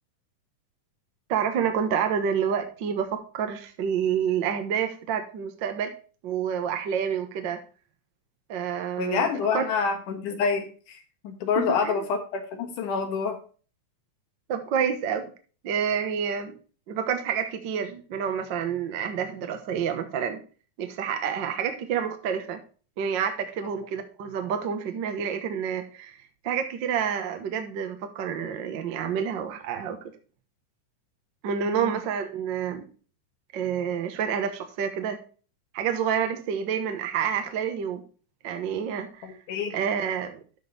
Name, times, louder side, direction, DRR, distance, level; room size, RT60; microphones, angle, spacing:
voice 1, 1.3-5.9 6.2-7.6 8.5-9.6 11.6-12.0 14.5-15.3 15.6-16.6 16.9-20.4 20.8-22.6 23.0-26.2 26.4-30.1 31.4-32.9 33.5-35.2 35.7-38.0 38.4-39.3 39.7-40.4, right 7 dB, 60° right, 7 dB, 1.2 m, -28 dB
voice 2, 9.0-11.0 11.2-13.4 31.7-32.0 39.2-39.7, left 6 dB, 80° left, 5 dB, 3.1 m, -27 dB
12.5 x 5.3 x 4.0 m, 0.38 s
omnidirectional pair, 3.5 m